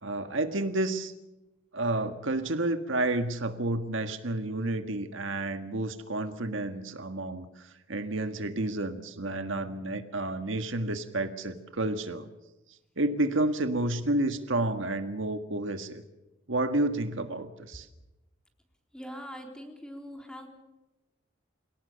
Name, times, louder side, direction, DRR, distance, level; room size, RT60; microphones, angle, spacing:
voice 1, 0.0-1.1 1.7-12.3 13.0-16.0 16.5-17.9, right 2 dB, 70° right, 8 dB, 1.7 m, -30 dB
voice 2, 18.9-20.5, equal, 5° left, 3 dB, 3.7 m, -42 dB
27.5 x 18.0 x 7.0 m, 0.97 s
head